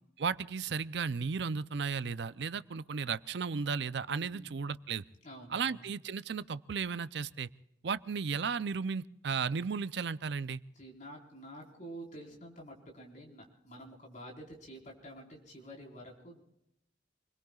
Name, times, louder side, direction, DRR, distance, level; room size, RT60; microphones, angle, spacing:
voice 1, 0.2-5.0 5.5-7.5 7.8-10.6, right 5 dB, 65° right, 16 dB, 0.5 m, -34 dB
voice 2, 5.2-5.8 10.7-16.4, right 1 dB, 45° left, -1 dB, 4.5 m, -49 dB
28.0 x 21.5 x 2.4 m, 0.82 s
head